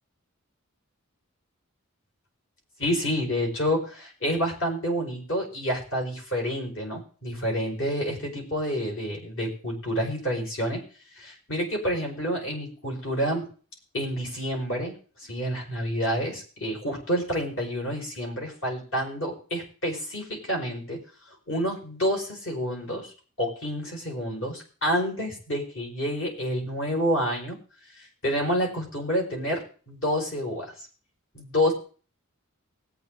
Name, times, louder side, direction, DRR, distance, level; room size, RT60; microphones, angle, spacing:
voice 1, 2.8-10.8 11.2-13.5 13.9-15.0 15.3-21.0 21.5-23.1 23.4-27.6 28.2-30.7 31.3-31.7, equal, 65° left, -1 dB, 5.2 m, -28 dB
20.0 x 9.0 x 3.9 m, 0.39 s
head